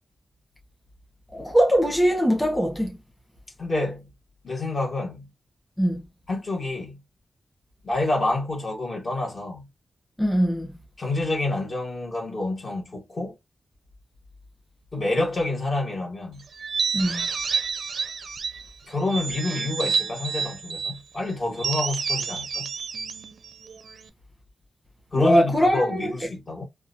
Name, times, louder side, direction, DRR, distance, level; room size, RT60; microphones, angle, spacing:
voice 1, 1.3-2.9 5.8-6.0 10.2-10.7 16.9-17.3 25.1-26.1, equal, 10° left, 1.1 m, -21 dB
voice 2, 3.6-4.1 4.4-5.3 6.3-7.0 7.8-9.7 11.0-13.4 14.9-16.4 18.9-22.7 25.1-26.7, left 2 dB, 50° left, 1.4 m, -28 dB
sound 1, 16.6-18.7 19.1-21.0 21.6-24.1, right 5 dB, 75° right, 0.4 m, -29 dB
3.7 x 2.3 x 2.6 m
cardioid pair, 75°, 0 cm